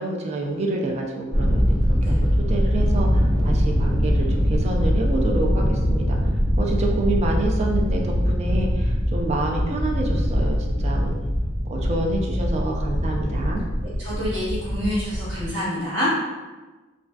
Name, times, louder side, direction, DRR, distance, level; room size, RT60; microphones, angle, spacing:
voice 1, 0.0-6.2 6.6-11.1 11.7-13.6, right 2 dB, 35° right, 0 dB, 0.3 m, -28 dB
Thunder, 1.3-15.5, equal, 55° right, 1.4 m, -22 dB
voice 2, 14.0-16.1, equal, 70° right, -9 dB, 1.1 m, -27 dB
2.4 x 2.3 x 2.3 m, 1.2 s
head